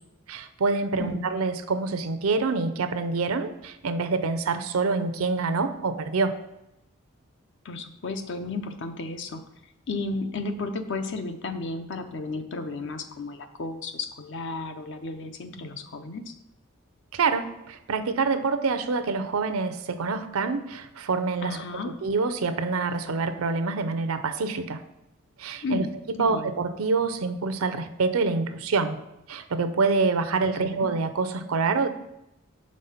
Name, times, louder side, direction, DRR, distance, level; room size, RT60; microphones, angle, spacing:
voice 1, 0.3-6.4 17.1-21.6 21.8-24.8 25.4-25.9 26.2-29.0 29.3-31.9, right 4 dB, 85° right, 10 dB, 0.6 m, -26 dB
voice 2, 7.6-9.4 9.9-16.3 21.4-21.9 25.6-25.9 26.2-26.5 30.4-30.9, left 3 dB, 60° left, 7 dB, 0.6 m, -33 dB
5.3 x 3.7 x 5.6 m, 0.89 s
head